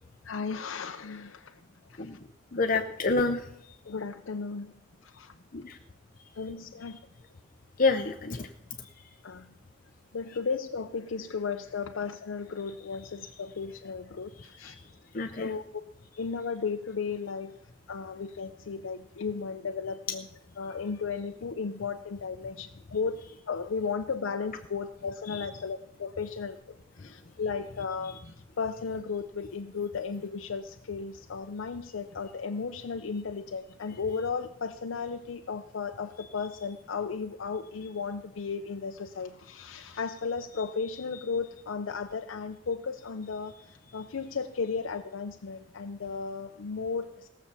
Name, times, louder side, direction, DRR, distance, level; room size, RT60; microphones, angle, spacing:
voice 1, 0.2-1.6 1.9-2.1 3.9-4.7 5.0-5.3 6.4-7.0 9.2-9.5 10.1-14.8 15.3-15.8 16.2-17.6 17.9-20.3 20.6-26.6 27.0-28.2 28.6-43.5 43.9-47.3, left 5 dB, 85° left, 6 dB, 0.6 m, -35 dB
voice 2, 2.5-3.4 5.5-5.8 7.8-8.5 14.7-14.8 15.1-15.5 25.3-25.4, left 3 dB, 45° left, 6 dB, 0.6 m, -27 dB
17.5 x 7.0 x 6.8 m, 0.79 s
head